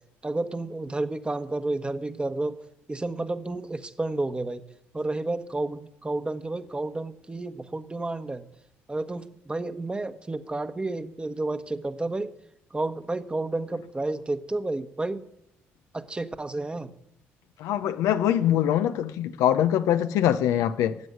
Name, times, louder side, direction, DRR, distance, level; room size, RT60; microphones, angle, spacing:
voice 1, 0.2-2.6 2.9-4.6 4.9-8.5 8.9-12.3 12.7-15.2 15.9-16.9, right 2 dB, 20° right, 1.3 m, -31 dB
voice 2, 17.6-21.0, left 10 dB, 75° left, 0.8 m, -23 dB
16.5 x 7.8 x 9.4 m
supercardioid pair, 70°, 6 cm